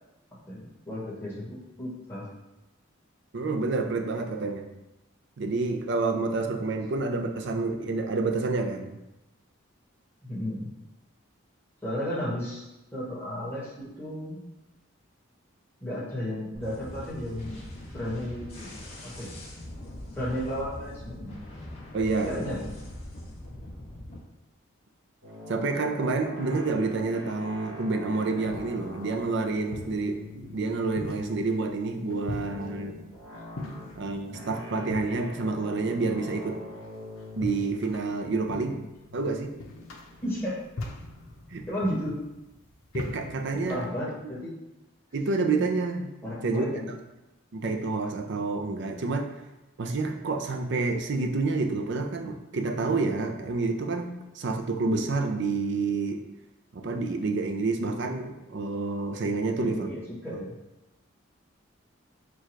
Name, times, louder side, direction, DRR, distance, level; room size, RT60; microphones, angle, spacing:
voice 1, 0.5-2.3 10.2-10.7 11.8-12.6 12.9-14.4 15.8-17.6 17.9-18.7 19.0-19.3 20.1-21.4 22.2-22.8 40.2-40.6 41.7-42.2 43.5-44.5 46.2-46.9 59.6-60.5, equal, 10° left, -8 dB, 1.3 m, -33 dB
voice 2, 3.3-4.7 5.4-9.0 21.9-22.4 25.5-33.0 34.0-36.6 37.4-38.8 39.1-39.5 41.5-41.7 42.9-43.8 45.1-46.1 46.4-46.8 47.5-49.3 49.8-56.2 56.7-59.9 60.3-60.4, right 3 dB, 55° right, 5 dB, 0.5 m, -28 dB
sound 1, 16.5-24.2, left 1 dB, 30° left, 1.3 m, -42 dB
sound 2, 25.2-41.7, left 2 dB, 80° right, 1.5 m, -44 dB
sound 3, 28.0-43.9, left 2 dB, 90° left, 0.7 m, -42 dB
4.6 x 2.3 x 4.5 m, 1.0 s
head